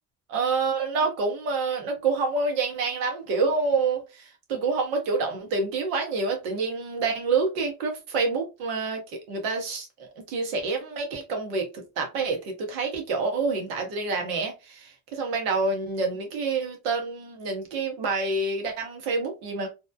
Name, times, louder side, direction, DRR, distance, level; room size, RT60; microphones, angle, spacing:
voice 1, 0.3-9.0 9.3-9.9 10.2-19.7, right 4 dB, 85° right, 0.8 m, -27 dB
2.9 x 2.1 x 2.2 m
hypercardioid pair, 55°, 41 cm